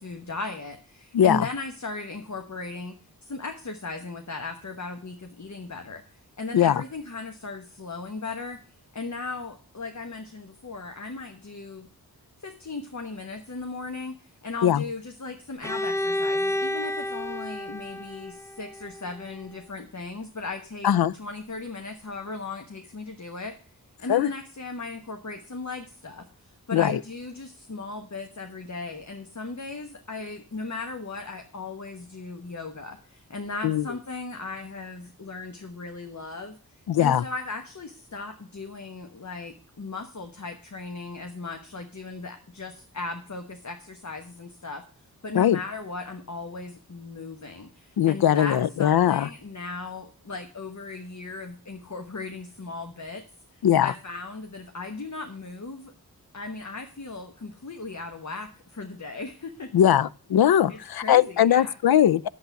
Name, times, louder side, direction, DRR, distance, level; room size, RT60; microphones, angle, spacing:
voice 1, 0.0-3.0 3.2-8.6 8.9-11.9 12.4-23.6 24.0-36.6 37.0-44.8 45.2-53.2 53.5-55.9 56.3-59.7 60.7-61.8, left 3 dB, 50° left, 1.2 m, -37 dB
voice 2, 1.1-1.5 6.5-6.8 14.6-14.8 20.8-21.1 24.1-24.3 26.7-27.0 33.6-33.8 36.9-37.2 45.3-45.6 48.0-49.3 53.6-53.9 59.7-62.3, left 10 dB, 75° left, 0.5 m, -20 dB
Bowed string instrument, 15.6-19.5, left 1 dB, 10° left, 0.4 m, -30 dB
8.1 x 7.6 x 6.9 m
cardioid pair, 45°, 37 cm